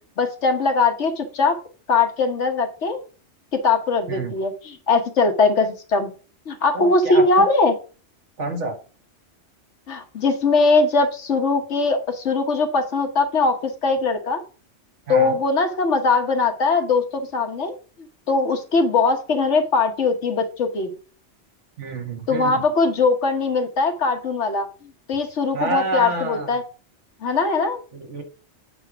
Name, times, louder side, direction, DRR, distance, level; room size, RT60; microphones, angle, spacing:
voice 1, 0.2-1.6 1.9-3.0 3.5-6.1 6.5-7.7 9.9-14.4 15.1-20.9 22.3-26.6 27.2-27.8, left 3 dB, 70° left, 5 dB, 1.5 m, -21 dB
voice 2, 6.7-7.5 8.4-8.8 15.1-15.4 21.8-22.6 25.5-26.6 27.9-28.2, right 2 dB, 75° right, 4 dB, 1.8 m, -28 dB
8.1 x 3.3 x 5.9 m, 0.37 s
omnidirectional pair, 1.2 m